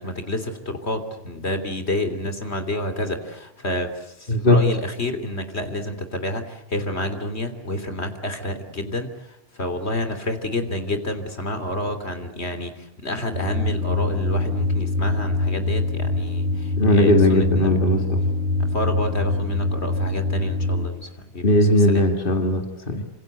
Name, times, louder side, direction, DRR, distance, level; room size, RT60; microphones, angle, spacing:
voice 1, 0.0-9.1 9.6-17.7 18.7-22.1 22.9-23.0, left 1 dB, 70° left, 9 dB, 3.4 m, -29 dB
voice 2, 4.3-4.6 16.8-18.2 21.4-23.0, left 1 dB, 50° left, 4 dB, 2.6 m, -18 dB
sound 1, 13.3-20.9, left 2 dB, 45° right, 3.4 m, -24 dB
27.5 x 26.5 x 8.1 m, 0.81 s
omnidirectional pair, 1.1 m